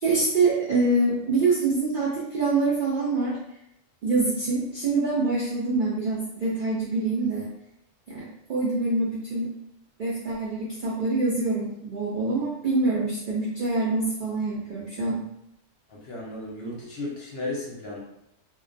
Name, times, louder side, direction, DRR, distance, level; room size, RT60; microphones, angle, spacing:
voice 1, 0.0-3.4 4.0-7.5 8.1-9.5 10.0-15.2, right 3 dB, 65° right, -7 dB, 0.5 m, -25 dB
voice 2, 15.9-18.0, left 2 dB, 60° left, -4 dB, 0.7 m, -34 dB
2.3 x 2.2 x 2.5 m, 0.81 s
omnidirectional pair, 1.4 m